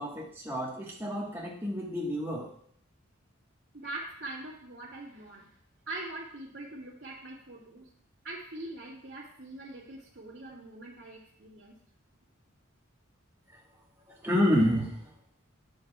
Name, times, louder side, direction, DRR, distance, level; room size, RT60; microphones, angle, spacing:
voice 1, 0.0-2.5 14.1-15.1, equal, 10° right, -3 dB, 1.3 m, -29 dB
voice 2, 3.7-5.5 5.9-7.9 8.2-11.8, right 2 dB, 60° right, -8 dB, 1.8 m, -42 dB
9.9 x 6.3 x 2.3 m, 0.62 s
head